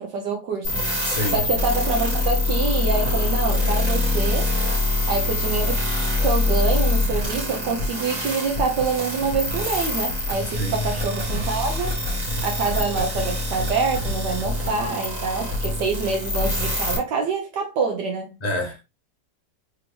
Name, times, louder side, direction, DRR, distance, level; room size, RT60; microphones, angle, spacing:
voice 1, 0.0-0.9 1.3-4.5 5.1-5.8 6.2-12.0 12.4-18.4, right 4 dB, 70° right, 1.3 m, -26 dB
sound 1, 0.6-17.0, left 2 dB, 45° right, 1.8 m, -24 dB
voice 2, 1.0-1.4 10.6-10.8 18.4-18.8, left 1 dB, 30° left, 0.8 m, -27 dB
3.8 x 3.5 x 3.1 m
omnidirectional pair, 2.0 m